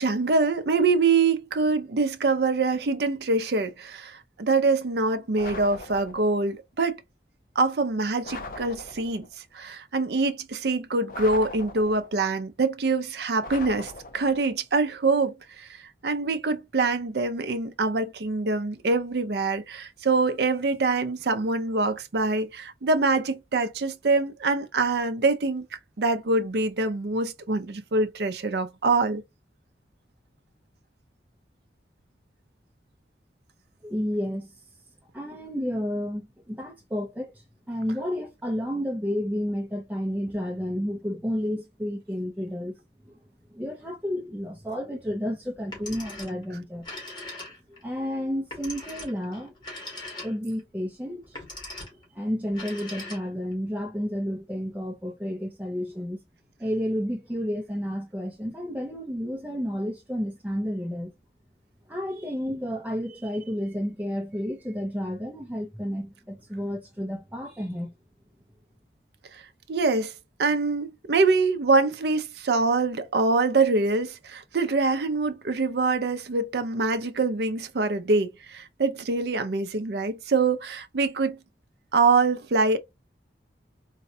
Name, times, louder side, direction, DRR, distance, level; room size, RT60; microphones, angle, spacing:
voice 1, 0.0-7.0 7.6-9.3 9.5-25.6 26.0-29.2 69.3-69.4 69.7-70.1 70.4-81.4 81.9-82.8, right 3 dB, 65° right, 0.5 m, -24 dB
sound 1, 5.4-6.4 8.2-9.3 11.1-12.2 13.4-14.5, left 3 dB, 50° left, 0.6 m, -40 dB
voice 2, 33.8-34.6 35.1-42.8 43.0-43.2 43.5-46.9 47.8-49.5 50.2-51.4 52.1-56.2 56.6-61.1 61.9-67.9, equal, 10° right, 0.5 m, -31 dB
Telephone, 45.6-46.4 46.7-47.8 48.5-50.6 51.2-52.0 52.5-53.5, left 2 dB, 25° left, 1.6 m, -40 dB
4.1 x 2.2 x 2.7 m
head